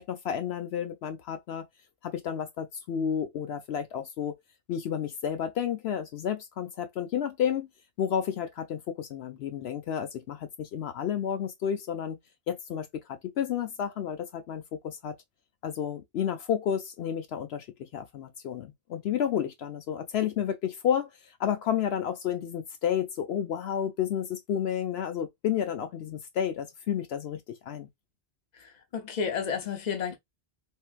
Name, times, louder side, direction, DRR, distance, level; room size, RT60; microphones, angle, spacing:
voice 1, 0.0-1.7 2.0-4.3 4.7-7.7 8.0-12.2 12.5-15.2 15.6-27.9, left 9 dB, 75° left, 0.9 m, -31 dB
voice 2, 28.6-30.2, left 6 dB, 45° left, 0.9 m, -32 dB
3.4 x 2.7 x 2.4 m
omnidirectional pair, 1.1 m